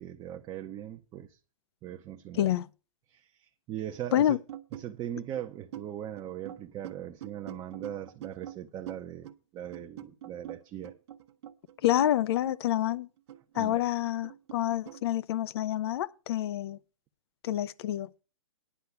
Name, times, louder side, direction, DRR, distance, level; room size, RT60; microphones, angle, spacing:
voice 1, 0.0-1.4 1.8-2.5 3.1-4.4 4.7-10.9 13.6-13.9, right 11 dB, 25° right, 0.8 m, -40 dB
sound 1, 4.5-4.8 5.2-5.3 5.7-5.9 6.2-8.6 8.9-9.4 9.7-12.2 12.5-12.6 12.9-14.6 14.9-15.0, right 11 dB, 55° right, 1.1 m, -44 dB
voice 2, 11.8-13.1 13.6-16.8 17.4-18.2, left 12 dB, 50° left, 0.6 m, -28 dB
9.9 x 5.7 x 8.3 m
hypercardioid pair, 120°, 17 cm